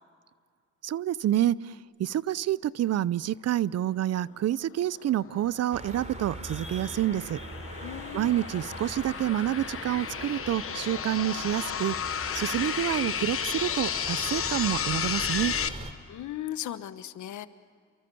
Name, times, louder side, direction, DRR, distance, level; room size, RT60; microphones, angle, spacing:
voice 1, 0.8-1.7 2.0-7.4 8.1-11.9 12.3-15.5, right 12 dB, 55° right, 21 dB, 0.6 m, -28 dB
sound 1, 4.9-15.7, left 8 dB, 45° left, 1.3 m, -33 dB
sound 2, 5.1-12.1, right 2 dB, 85° right, 5.5 m, -59 dB
sound 3, 5.7-15.9, right 2 dB, 25° right, 3.3 m, -42 dB
voice 2, 7.8-8.3 16.1-17.5, left 12 dB, 75° left, 12 dB, 1.3 m, -37 dB
30.0 x 23.5 x 7.0 m, 2.1 s
cardioid pair, 90°, 30 cm